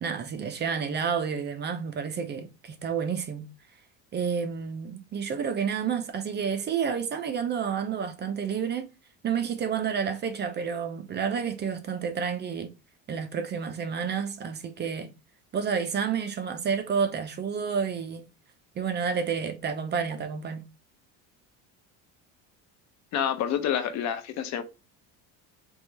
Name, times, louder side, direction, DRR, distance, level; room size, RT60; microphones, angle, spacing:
voice 1, 0.0-3.5 4.1-8.9 9.2-12.7 13.1-15.1 15.5-18.2 18.8-20.7, right 6 dB, 30° right, 0.7 m, -30 dB
voice 2, 23.1-24.6, left 9 dB, 55° left, 0.8 m, -28 dB
3.6 x 3.1 x 4.5 m
cardioid pair, 140°, 33 cm